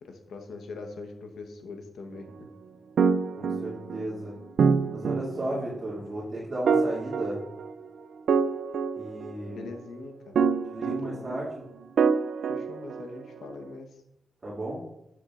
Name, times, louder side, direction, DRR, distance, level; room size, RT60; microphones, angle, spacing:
voice 1, 0.0-2.3 9.5-10.4 10.9-11.3 12.5-13.9, left 3 dB, 90° left, 5 dB, 1.1 m, -42 dB
sound 1, 3.0-4.2 4.6-5.8 6.7-7.9 8.3-9.7 10.4-11.5 12.0-13.4, right 5 dB, 80° right, 0.4 m, -26 dB
voice 2, 3.4-4.3 4.9-7.4 9.0-9.7 10.7-11.6 14.4-14.8, right 1 dB, 30° right, -7 dB, 2.5 m, -34 dB
10.0 x 7.3 x 2.5 m, 0.85 s
wide cardioid pair, 105°, 0 cm